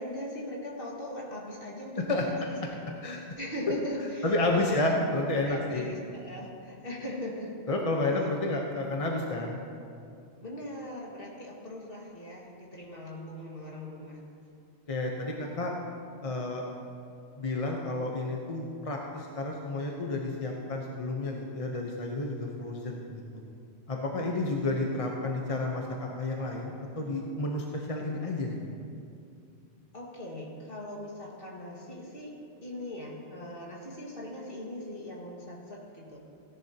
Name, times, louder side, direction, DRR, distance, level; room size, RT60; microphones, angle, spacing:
voice 1, 0.0-5.1 5.5-7.6 10.4-14.2 24.4-24.7 29.9-32.3 32.6-36.2, left 1 dB, 55° left, -3 dB, 2.1 m, -40 dB
voice 2, 4.2-5.9 7.7-9.6 14.9-15.7 16.2-16.6 17.4-23.4 23.9-28.6, left 2 dB, 35° left, 0 dB, 0.9 m, -31 dB
17.0 x 10.5 x 2.9 m, 2.5 s
omnidirectional pair, 1.1 m